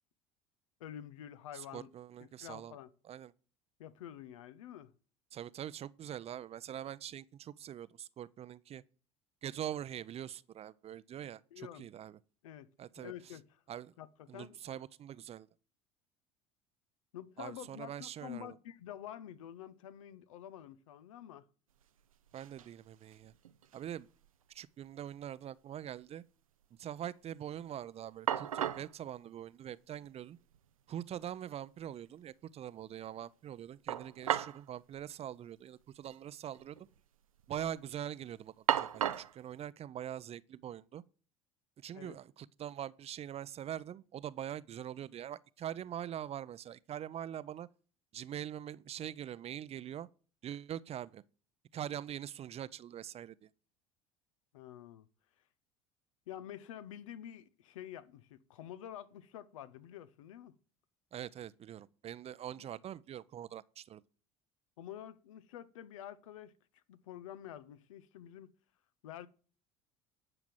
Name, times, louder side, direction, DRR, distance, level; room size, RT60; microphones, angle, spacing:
voice 1, 0.8-1.9 2.2-2.9 3.8-4.9 11.5-11.8 12.4-12.7 13.0-13.6 14.0-14.8 17.1-21.5 41.9-42.2 54.5-55.1 56.3-60.5 62.6-62.7 64.8-68.5 69.0-69.3, left 11 dB, 75° left, 0.8 m, -48 dB
voice 2, 1.5-2.8 3.0-3.3 5.3-8.8 9.4-12.2 12.8-13.1 13.7-13.9 14.3-15.5 17.4-18.6 22.3-23.3 23.7-24.1 24.5-26.2 26.8-30.4 30.9-36.8 37.5-41.0 41.8-47.7 48.1-50.1 50.4-51.2 51.7-53.5 61.1-64.0, right 10 dB, 35° right, 0.6 m, -43 dB
sound 1, 21.8-21.9 22.1-22.7 23.1-24.0 24.2-24.3 27.8-27.9 28.3-28.9 30.0-30.1 30.5-30.6 33.9-34.6 34.9-35.0 35.9-36.2 36.5-37.0 37.4-37.8 38.7-39.4, right 10 dB, 85° right, 0.6 m, -35 dB
11.0 x 6.0 x 7.7 m
hypercardioid pair, 65°, 17 cm